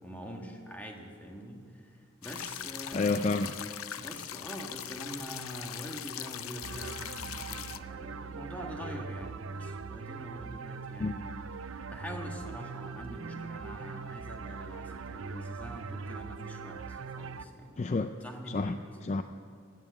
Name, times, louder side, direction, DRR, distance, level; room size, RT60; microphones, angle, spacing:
voice 1, 0.0-3.2 3.9-11.3 11.9-17.8 18.2-19.0, equal, 5° left, 1 dB, 1.5 m, -44 dB
sound 1, 2.2-7.8, left 11 dB, 85° left, 0.6 m, -41 dB
voice 2, 2.9-3.5 11.0-11.1 17.8-18.1 18.5-18.8 19.0-19.2, left 3 dB, 35° left, 9 dB, 0.3 m, -29 dB
sound 2, 6.6-17.5, right 5 dB, 80° right, 0.6 m, -41 dB
16.0 x 9.1 x 7.9 m, 2.2 s
head